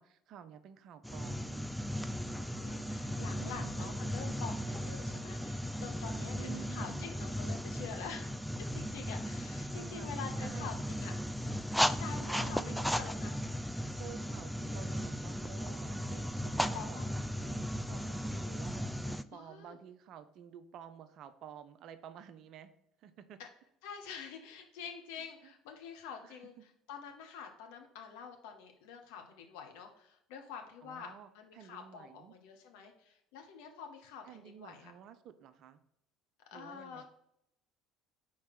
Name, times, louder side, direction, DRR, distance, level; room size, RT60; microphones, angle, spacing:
voice 1, 0.0-1.7 3.3-4.0 6.3-7.1 9.8-10.1 10.4-10.8 12.3-12.9 14.0-17.0 17.4-22.7 23.0-23.4 25.2-25.5 26.2-26.4 30.8-31.3 31.5-32.4 34.3-35.8 36.5-37.1, right 9 dB, 50° right, 12 dB, 0.5 m, -51 dB
sound 1, 1.0-19.2, equal, ahead, 0.3 m, -36 dB
voice 2, 2.3-8.4 8.7-11.1 11.5-13.4 16.7-17.1 19.3-19.8 23.4-23.5 23.8-34.9 36.5-37.1, left 6 dB, 65° left, 4 dB, 1.0 m, -47 dB
4.6 x 4.3 x 5.8 m, 0.78 s
figure-of-eight pair, 60°, 0 cm